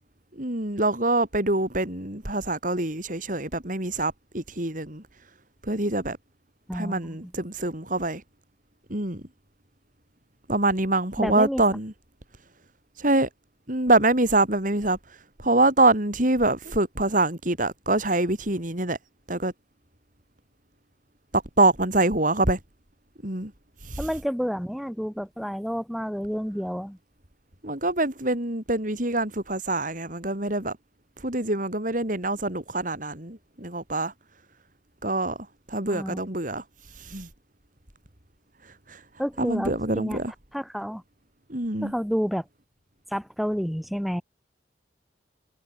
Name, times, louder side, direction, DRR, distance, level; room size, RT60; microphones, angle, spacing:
voice 1, 0.3-5.0 5.6-6.2 6.7-8.2 8.9-9.2 10.5-11.9 13.0-13.3 13.7-15.0 15.4-19.0 19.3-19.5 21.3-22.6 23.2-23.5 23.8-24.1 27.6-30.8 31.2-34.1 35.0-35.4 35.7-36.6 37.0-37.3 38.9-39.0 39.4-40.3 41.5-41.9, right 2 dB, 45° right, 4.3 m, -25 dB
voice 2, 6.7-7.3 11.2-11.6 24.0-27.0 35.9-36.2 39.2-40.2 40.5-41.0 41.8-42.4 43.1-44.2, equal, ahead, 2.9 m, -29 dB
head